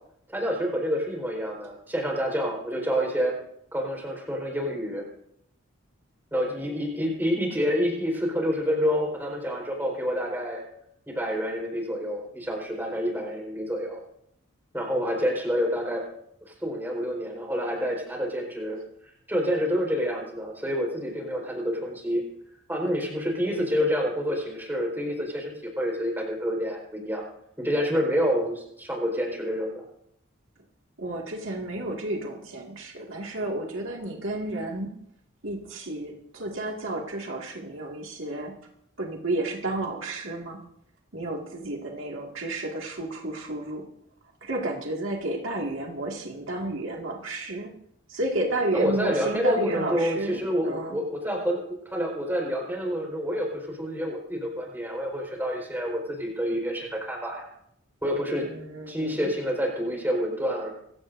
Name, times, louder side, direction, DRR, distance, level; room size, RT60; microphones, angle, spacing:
voice 1, 0.3-3.3 3.7-5.0 6.3-10.6 11.1-14.0 14.7-16.0 16.6-18.8 19.3-22.2 22.7-27.3 27.6-29.8 48.7-57.5 58.0-58.4 58.9-60.7, equal, 10° right, -1 dB, 4.5 m, -28 dB
voice 2, 31.0-34.9 35.4-38.5 39.0-40.6 41.1-43.8 44.4-47.7 48.1-51.0 58.5-59.2, right 1 dB, 65° right, -1 dB, 2.1 m, -31 dB
25.5 x 16.5 x 2.7 m, 0.73 s
head